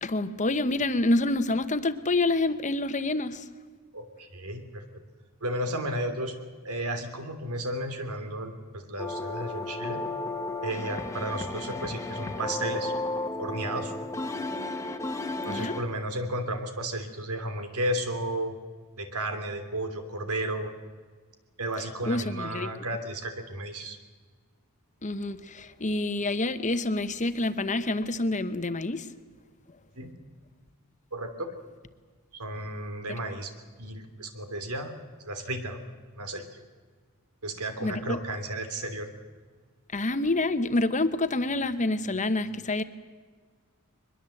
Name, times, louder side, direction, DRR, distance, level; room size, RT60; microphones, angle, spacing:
voice 1, 0.0-3.4 15.5-15.7 22.1-22.7 25.0-29.1 37.8-38.2 39.9-42.8, left 2 dB, 35° left, 11 dB, 1.0 m, -27 dB
voice 2, 3.9-4.9 5.4-6.3 6.6-10.0 10.6-12.9 13.4-13.9 15.4-18.5 19.0-20.7 21.6-24.0 30.0-30.2 31.1-31.6 32.3-33.5 33.8-35.8 36.1-36.5 37.4-39.1, right 1 dB, 90° right, 8 dB, 2.9 m, -33 dB
sound 1, 9.0-15.8, left 2 dB, 15° left, 1.3 m, -33 dB
22.5 x 21.5 x 7.8 m, 1.5 s
head